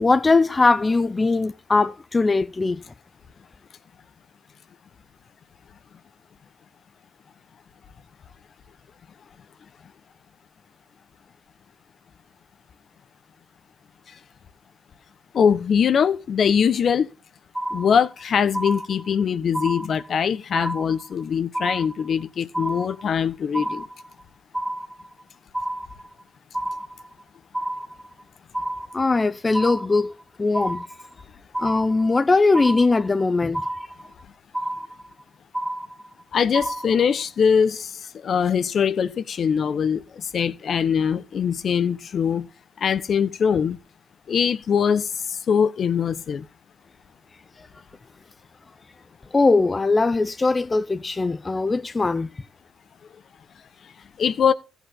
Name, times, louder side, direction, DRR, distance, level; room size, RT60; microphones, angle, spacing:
voice 1, 0.0-2.8 28.9-30.1 30.4-30.8 31.6-33.6 47.6-47.7 49.3-52.3, left 3 dB, 25° left, 0.7 m, -20 dB
voice 2, 15.3-17.1 17.7-23.8 36.3-42.5 42.8-43.8 44.3-46.4 54.2-54.5, left 7 dB, 55° left, 1.2 m, -22 dB
sound 1, 17.5-18.2 18.5-19.2 19.5-20.2 20.5-21.2 21.5-22.2 22.5-23.2 23.5-24.2 24.5-25.2 25.5-26.2 26.5-27.2 27.5-28.2 28.5-29.2 29.5-30.2 30.5-31.2 31.5-32.2 32.5-33.2 33.5-34.2 34.5-35.2 35.5-36.2 36.5-37.2, right 1 dB, 5° right, 1.6 m, -30 dB
14.5 x 8.3 x 4.0 m
cardioid pair, 90°, 0 cm